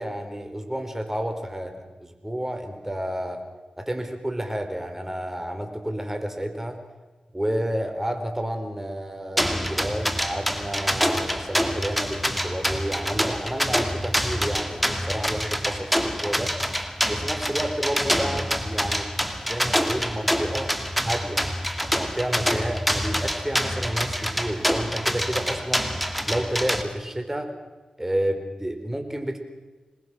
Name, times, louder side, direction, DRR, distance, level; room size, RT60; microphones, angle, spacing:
voice 1, 0.0-1.7 2.0-3.4 3.8-6.8 7.3-16.6 17.1-19.1 19.5-20.7 21.0-21.4 22.0-25.9 26.2-27.5 28.0-29.4, right 1 dB, 15° right, 6 dB, 4.4 m, -30 dB
sound 1, 9.4-26.8, equal, ahead, 2.5 m, -26 dB
26.5 x 20.5 x 6.3 m, 1.2 s
cardioid pair, 40°, 2 cm